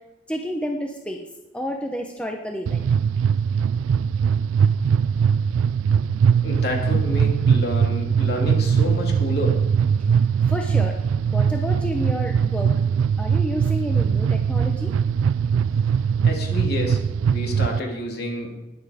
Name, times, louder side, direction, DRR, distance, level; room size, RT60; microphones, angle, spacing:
voice 1, 0.3-1.3 1.5-2.8 10.5-11.0 11.3-12.7 13.2-14.9, equal, 5° left, 2 dB, 0.8 m, -30 dB
sound 1, 2.7-17.8, right 7 dB, 80° right, 0.3 m, -21 dB
voice 2, 6.4-9.7 16.2-18.6, left 1 dB, 50° left, 1 dB, 2.8 m, -29 dB
19.5 x 7.3 x 5.0 m, 1.0 s
head